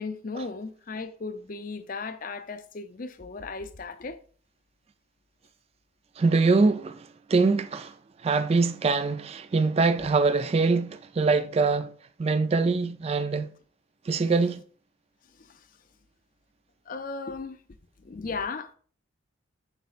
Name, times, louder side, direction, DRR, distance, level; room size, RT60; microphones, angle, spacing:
voice 1, 0.0-4.2 15.4-15.6 16.9-17.6 18.0-18.7, left 4 dB, 45° left, 0.5 m, -36 dB
voice 2, 6.2-7.9 8.2-11.9 12.2-13.5 14.1-14.6, right 4 dB, 30° right, 0.3 m, -24 dB
8.0 x 5.2 x 2.4 m
head